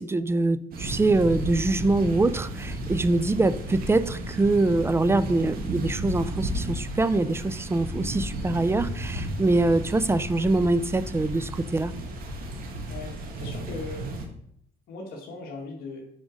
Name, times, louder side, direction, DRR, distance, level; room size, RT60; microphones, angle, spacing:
voice 1, 0.0-11.9, right 2 dB, 15° right, 14 dB, 0.4 m, -24 dB
sound 1, 0.7-14.3, right 1 dB, 60° right, 1.7 m, -33 dB
voice 2, 12.9-14.1 14.9-16.0, left 3 dB, 65° left, -2 dB, 1.7 m, -39 dB
6.3 x 5.0 x 6.3 m, 0.69 s
cardioid pair, 110°, 17 cm